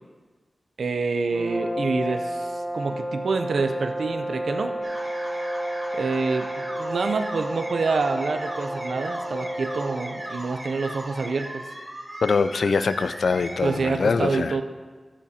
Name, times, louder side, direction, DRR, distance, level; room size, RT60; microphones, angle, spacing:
voice 1, 0.8-4.7 5.9-11.6 13.6-14.6, right 4 dB, 85° right, 6 dB, 0.5 m, -27 dB
sound 1, 1.3-10.2, right 1 dB, 35° left, 3.2 m, -31 dB
sound 2, 4.8-13.8, right 1 dB, 35° right, 1.8 m, -37 dB
voice 2, 12.2-14.6, left 4 dB, 85° left, 14 dB, 0.3 m, -23 dB
14.0 x 7.2 x 2.8 m, 1.4 s
wide cardioid pair, 65°, 0 cm